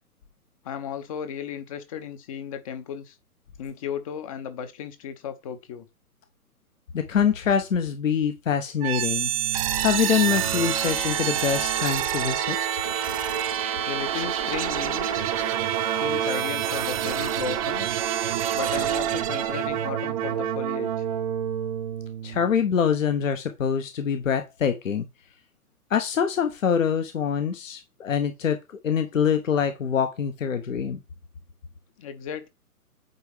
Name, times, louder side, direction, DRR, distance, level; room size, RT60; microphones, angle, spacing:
voice 1, 0.6-3.1 3.6-5.9 13.9-15.3 15.9-18.0 18.5-21.0 32.0-32.5, left 8 dB, 25° left, 0.8 m, -35 dB
voice 2, 6.9-9.3 9.8-12.6 22.2-25.1 25.9-28.6 28.8-31.0, left 7 dB, 55° left, 1.1 m, -24 dB
sound 1, 8.8-22.7, right 10 dB, 25° right, 0.8 m, -27 dB
9.1 x 3.4 x 4.8 m
figure-of-eight pair, 125°, 45 cm